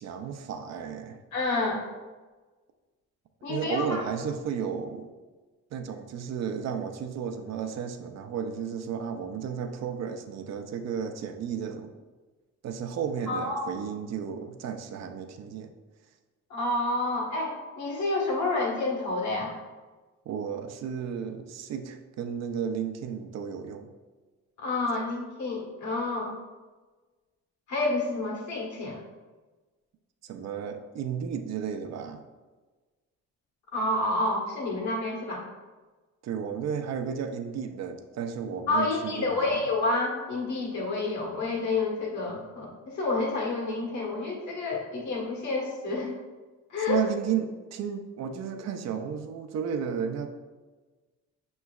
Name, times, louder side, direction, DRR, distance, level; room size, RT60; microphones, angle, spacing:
voice 1, 0.0-1.2 3.5-5.1 5.7-11.9 12.6-15.7 20.3-23.9 30.2-32.2 36.2-39.6 46.9-50.3, right 7 dB, 60° right, 6 dB, 0.5 m, -33 dB
voice 2, 1.3-1.8 3.4-4.0 13.3-13.7 16.5-19.5 24.6-26.3 27.7-29.0 33.7-35.4 38.7-46.1 46.7-47.0, left 2 dB, 70° left, -3 dB, 1.4 m, -29 dB
5.7 x 3.1 x 2.3 m, 1.3 s
cardioid pair, 90°, 30 cm